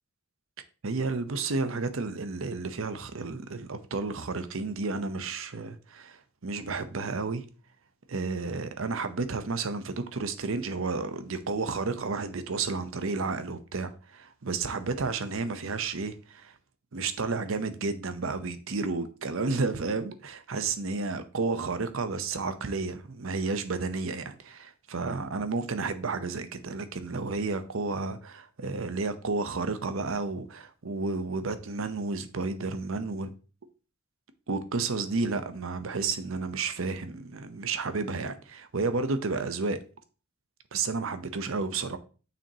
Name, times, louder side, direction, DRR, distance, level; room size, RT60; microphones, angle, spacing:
voice 1, 0.8-7.4 8.1-16.5 16.9-33.3 34.5-39.8 40.7-42.0, right 3 dB, 65° right, 0.7 m, -31 dB
7.0 x 6.0 x 2.8 m
head